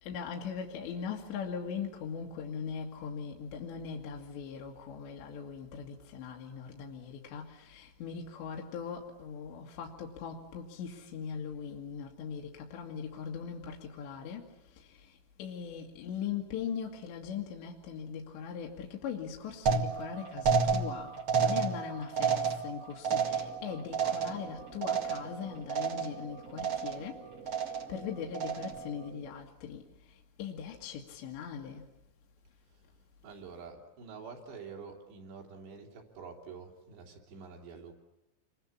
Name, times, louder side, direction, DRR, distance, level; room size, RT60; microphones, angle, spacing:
voice 1, 0.0-31.9, left 7 dB, 65° left, 3.9 m, -40 dB
sound 1, 19.7-25.4 25.7-26.3 26.6-27.1 27.5-28.0 28.3-28.9, right 6 dB, 80° right, 1.1 m, -31 dB
sound 2, 23.0-29.3, right 5 dB, 30° right, 1.4 m, -50 dB
voice 2, 33.2-37.9, right 5 dB, 60° right, 5.3 m, -47 dB
28.0 x 24.0 x 8.6 m
omnidirectional pair, 5.9 m